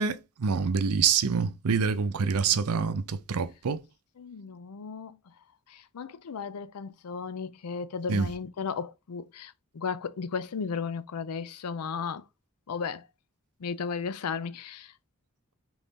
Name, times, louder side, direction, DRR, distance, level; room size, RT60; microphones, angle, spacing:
voice 1, 0.0-3.8 8.1-8.3, right 6 dB, 80° right, 0.6 m, -26 dB
voice 2, 4.2-5.2 5.7-12.2 12.7-13.1 13.6-14.9, left 5 dB, 85° left, 0.5 m, -35 dB
4.0 x 3.1 x 3.6 m
head